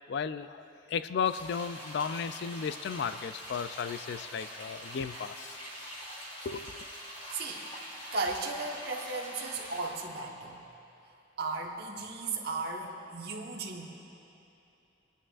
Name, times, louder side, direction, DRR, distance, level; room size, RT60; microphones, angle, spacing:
voice 1, 0.1-5.6 6.4-6.8, left 6 dB, 60° left, 12 dB, 0.3 m, -34 dB
sound 1, 1.2-10.0, equal, 30° left, 2.6 m, -44 dB
voice 2, 7.3-7.6 8.1-10.6 11.4-13.8, right 3 dB, 55° right, 0 dB, 1.2 m, -35 dB
28.0 x 9.9 x 2.4 m, 2.8 s
head